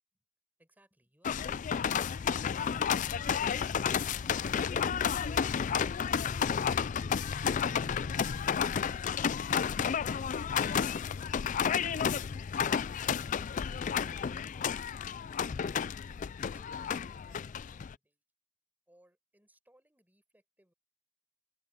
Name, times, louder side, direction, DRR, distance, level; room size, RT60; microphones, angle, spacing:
voice 1, 0.6-1.9 16.3-18.2 18.9-20.7, right 1 dB, 10° right, 4.9 m, -67 dB
sound 1, 1.2-18.0, left 7 dB, 45° left, 0.4 m, -31 dB
sound 2, 4.0-8.5, left 3 dB, 70° left, 0.7 m, -45 dB
open air
head